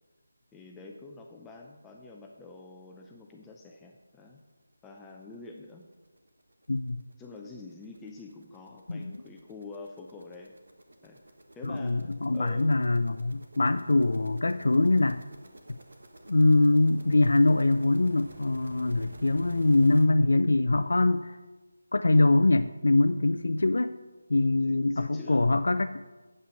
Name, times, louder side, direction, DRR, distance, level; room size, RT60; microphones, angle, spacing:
voice 1, 0.5-4.4 4.8-5.9 7.2-10.6 11.0-11.2 11.5-12.7 24.7-25.6, left 3 dB, 10° left, 0 dB, 0.5 m, -46 dB
sound 1, 4.6-4.7 5.1-5.2 5.5-20.1, right 2 dB, 60° right, 1.2 m, -51 dB
voice 2, 6.7-7.0 8.9-9.2 11.6-15.2 15.7-15.8 16.3-21.4 21.9-24.0 24.3-26.1, left 2 dB, 65° left, 10 dB, 0.4 m, -23 dB
8.6 x 8.0 x 5.6 m, 1.2 s
figure-of-eight pair, 160°, 0 cm